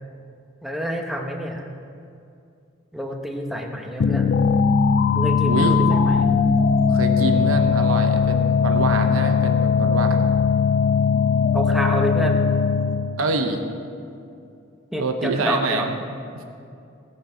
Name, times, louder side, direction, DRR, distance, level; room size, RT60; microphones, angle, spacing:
voice 1, 0.6-1.7 2.9-4.4 5.1-6.3 11.5-12.5 14.9-15.9, equal, ahead, 1 dB, 1.0 m, -28 dB
sound 1, 4.0-13.2, left 6 dB, 50° left, 0.3 m, -19 dB
voice 2, 6.9-10.3 13.2-13.6 15.0-16.0 16.3-16.4, right 3 dB, 85° right, 5 dB, 1.0 m, -25 dB
19.5 x 6.7 x 4.5 m, 2.5 s
head